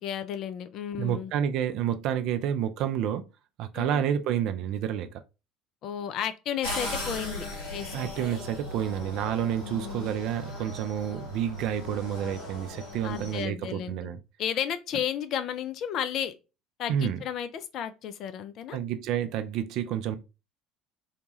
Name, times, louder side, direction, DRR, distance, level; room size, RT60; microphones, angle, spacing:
voice 1, 0.0-1.3 3.7-4.0 5.8-8.1 9.6-10.1 13.0-14.1 14.4-16.3 16.8-18.8, left 9 dB, 50° left, 0.4 m, -33 dB
voice 2, 1.0-3.3 3.6-5.2 7.9-14.2 16.9-17.2 18.7-20.2, right 9 dB, 55° right, 0.4 m, -29 dB
sound 1, 6.6-13.4, left 1 dB, 75° left, 1.4 m, -38 dB
2.8 x 2.2 x 2.8 m
figure-of-eight pair, 60°, 0 cm